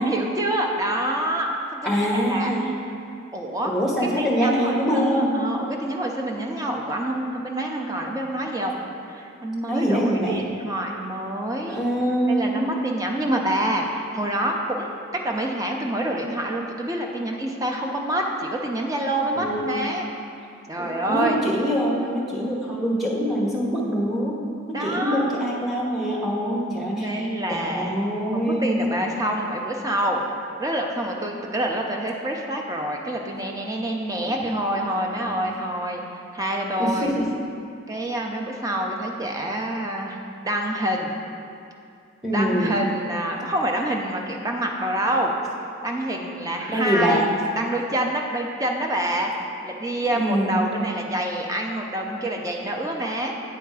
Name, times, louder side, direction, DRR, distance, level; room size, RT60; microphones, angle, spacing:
voice 1, 0.1-2.5 3.3-3.7 4.2-8.8 9.1-11.8 12.3-14.9 15.2-20.1 20.7-21.4 24.7-25.4 26.9-28.0 28.3-30.2 30.6-37.1 37.9-40.2 40.4-41.1 42.3-45.3 45.8-47.2 47.6-49.3 49.6-53.3, right 1 dB, 15° right, 1 dB, 0.5 m, -27 dB
voice 2, 1.8-2.7 3.6-5.4 9.7-10.4 11.7-12.7 19.3-19.9 20.8-24.3 24.7-28.6 36.8-37.2 42.2-42.7 46.7-47.3 49.9-50.6, equal, ahead, -4 dB, 0.9 m, -24 dB
9.1 x 3.4 x 4.8 m, 2.5 s
head